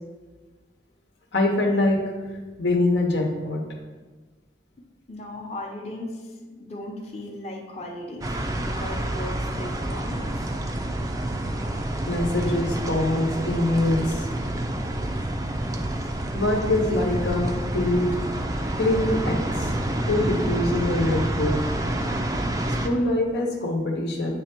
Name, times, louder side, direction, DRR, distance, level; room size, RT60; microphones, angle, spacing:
voice 1, 1.3-3.6 12.1-14.3 16.3-18.1 18.8-19.7 20.1-21.6 22.7-24.4, left 2 dB, 75° left, 1 dB, 1.0 m, -24 dB
voice 2, 5.1-6.3 6.6-8.3 8.6-10.5 15.3-16.1, left 1 dB, 35° left, -2 dB, 0.8 m, -37 dB
sound 1, 8.2-22.9, right 1 dB, 20° right, 0.4 m, -28 dB
8.4 x 3.3 x 4.5 m, 1.3 s
head